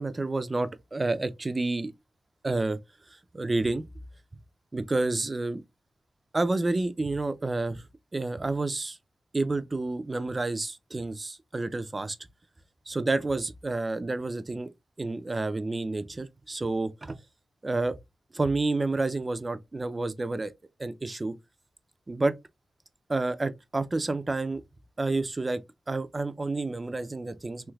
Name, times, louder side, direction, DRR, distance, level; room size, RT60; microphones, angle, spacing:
voice 1, 0.0-1.9 2.4-2.8 3.3-3.8 4.7-5.6 6.3-7.8 8.1-9.0 9.3-12.2 12.9-14.7 15.0-17.2 17.6-18.0 18.3-20.5 20.8-21.3 22.1-22.3 23.1-24.6 25.0-25.6 25.9-27.7, right 2 dB, 30° right, 0.4 m, -29 dB
3.2 x 3.0 x 2.3 m
cardioid pair, 65°, 0 cm